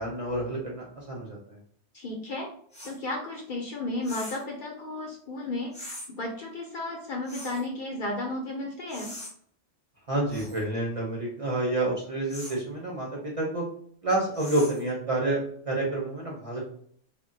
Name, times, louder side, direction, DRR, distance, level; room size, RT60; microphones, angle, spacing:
voice 1, 0.0-1.6 10.1-13.6 14.0-16.6, right 2 dB, 40° right, -3 dB, 0.5 m, -29 dB
voice 2, 1.9-2.5 2.8-9.1, left 2 dB, 55° left, 0 dB, 0.6 m, -34 dB
sound 1, 2.7-3.0 4.0-4.5 5.7-6.1 7.3-7.7 8.9-9.3 10.3-10.6 12.3-12.6 14.3-14.9, left 1 dB, 5° left, 0.6 m, -42 dB
2.3 x 2.1 x 3.8 m, 0.62 s
omnidirectional pair, 1.2 m